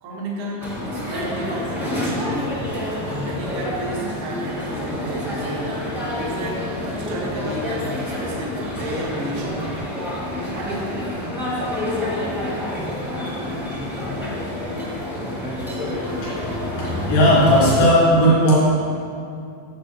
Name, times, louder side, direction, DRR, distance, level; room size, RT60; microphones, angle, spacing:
voice 1, 0.0-5.8 6.1-6.7 6.9-9.8 10.5-11.0, right 1 dB, 70° right, -3 dB, 2.7 m, -32 dB
sound 1, 0.6-17.9, left 1 dB, ahead, 0.7 m, -27 dB
voice 2, 16.8-18.5, equal, 90° left, -9 dB, 4.1 m, -16 dB
12.5 x 7.3 x 3.5 m, 2.5 s
omnidirectional pair, 3.8 m